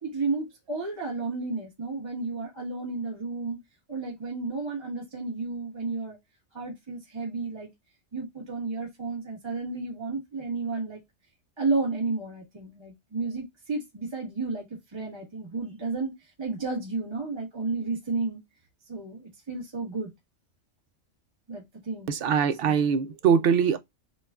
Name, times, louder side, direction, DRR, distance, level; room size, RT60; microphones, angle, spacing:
voice 1, 0.0-3.6 3.9-6.2 6.5-7.7 8.1-11.0 11.6-14.7 14.9-18.4 18.9-20.1 21.5-22.8, right 3 dB, 25° right, 1.1 m, -32 dB
voice 2, 22.1-23.8, right 7 dB, 65° right, 0.6 m, -22 dB
6.4 x 2.3 x 2.3 m
omnidirectional pair, 1.3 m